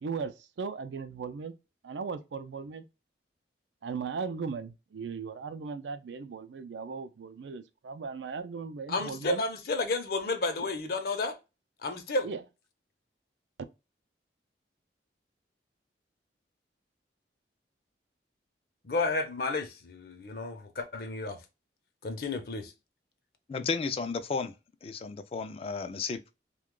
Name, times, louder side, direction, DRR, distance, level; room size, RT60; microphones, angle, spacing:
voice 1, 0.0-1.5 1.8-2.8 3.8-9.4 12.2-12.4, right 5 dB, 80° right, 0.4 m, -37 dB
voice 2, 8.9-11.4 11.8-12.3 18.8-21.4 22.0-22.7, left 3 dB, 55° left, 0.7 m, -31 dB
voice 3, 23.5-24.5 24.8-26.3, left 5 dB, 30° left, 0.3 m, -33 dB
2.9 x 2.3 x 3.6 m
head